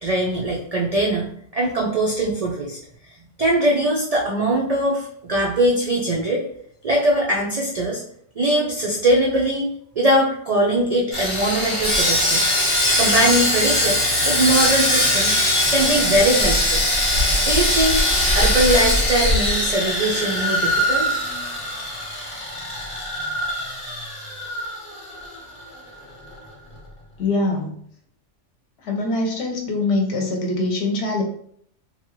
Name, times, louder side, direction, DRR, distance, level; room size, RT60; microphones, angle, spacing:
voice 1, 0.0-2.8 3.4-6.4 6.8-8.0 8.4-9.7 10.0-12.5 13.0-15.4 15.7-16.8 17.5-18.0 18.3-21.1, right 1 dB, 70° right, -2 dB, 0.3 m, -21 dB
Sawing, 11.1-25.4 25.6-25.8 26.3-26.4, left 1 dB, 30° left, 0.8 m, -21 dB
voice 2, 27.2-27.7 28.8-31.2, left 2 dB, 65° left, 1 dB, 0.9 m, -23 dB
2.7 x 2.2 x 3.0 m, 0.65 s
omnidirectional pair, 1.2 m